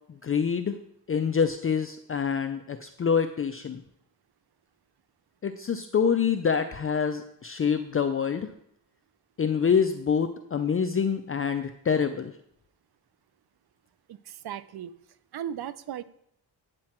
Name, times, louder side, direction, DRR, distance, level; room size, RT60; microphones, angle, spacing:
voice 1, 0.2-0.8 1.1-3.8 5.4-8.5 9.4-12.3, left 6 dB, 35° left, 8 dB, 0.5 m, -26 dB
voice 2, 14.1-14.9 15.3-16.0, right 10 dB, 70° right, 16 dB, 0.6 m, -36 dB
8.5 x 7.5 x 4.4 m, 0.74 s
cardioid pair, 95°, 40 cm